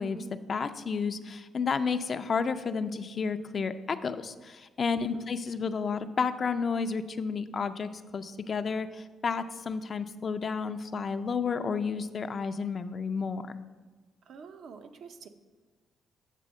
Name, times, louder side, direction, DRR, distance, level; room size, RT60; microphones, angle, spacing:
voice 1, 0.0-13.6, left 5 dB, 45° left, 10 dB, 0.4 m, -31 dB
voice 2, 14.3-15.3, right 6 dB, 65° right, 7 dB, 0.6 m, -47 dB
8.3 x 3.4 x 6.4 m, 1.3 s
cardioid pair, 90°, 0 cm